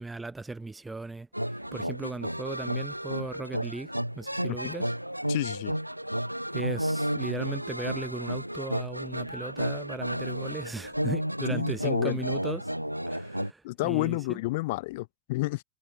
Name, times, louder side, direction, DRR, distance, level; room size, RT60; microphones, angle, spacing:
voice 1, 0.0-4.9 6.5-12.7 13.1-14.4, right 3 dB, 10° right, 2.2 m, -37 dB
sound 1, 1.3-13.5, equal, 90° right, 1.1 m, -32 dB
voice 2, 5.3-5.7 11.5-12.2 13.6-15.6, left 21 dB, 50° left, 7.9 m, -30 dB
figure-of-eight pair, 90°, 0 cm